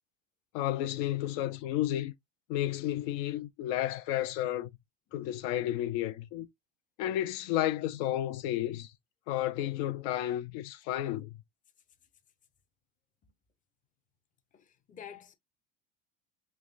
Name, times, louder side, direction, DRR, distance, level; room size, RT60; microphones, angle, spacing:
voice 1, 0.5-2.1 2.5-4.7 5.1-6.5 7.0-8.9 9.3-11.3, left 13 dB, 65° left, 0.6 m, -32 dB
voice 2, 14.5-15.3, left 8 dB, 20° left, 0.6 m, -48 dB
3.4 x 3.1 x 2.5 m
supercardioid pair, 105°, 38 cm